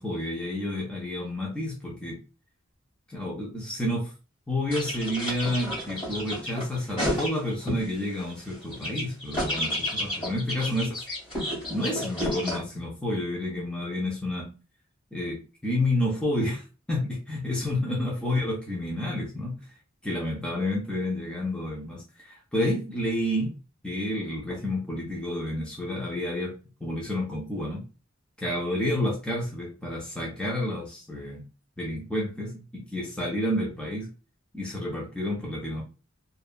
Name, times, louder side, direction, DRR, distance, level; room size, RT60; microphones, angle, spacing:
voice 1, 0.0-2.2 3.1-4.1 4.5-11.1 11.7-14.5 15.1-19.5 20.0-23.5 23.8-27.8 28.4-31.4 31.8-34.1 34.5-35.8, left 1 dB, 5° left, -4 dB, 0.5 m, -30 dB
sound 1, 4.7-7.8 8.2-12.6, equal, 25° left, 1.5 m, -31 dB
2.7 x 2.3 x 2.4 m, 0.33 s
head